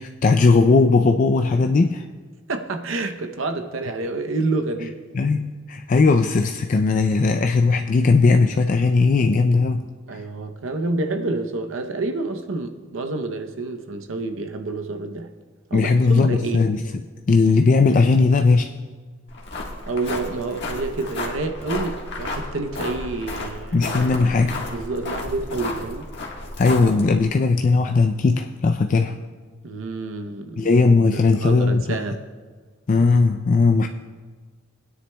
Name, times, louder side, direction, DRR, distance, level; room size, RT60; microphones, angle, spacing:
voice 1, 0.0-2.0 5.1-9.8 15.7-18.7 23.7-24.6 26.6-29.2 30.6-32.0 32.9-33.9, left 4 dB, 40° left, 0.4 m, -18 dB
voice 2, 2.5-5.0 10.1-15.3 15.7-16.7 19.9-23.8 24.7-26.1 29.6-30.7 31.1-32.2, right 3 dB, 85° right, 0.7 m, -28 dB
sound 1, 19.3-27.2, left 2 dB, 60° left, 1.5 m, -32 dB
19.5 x 9.8 x 2.2 m
head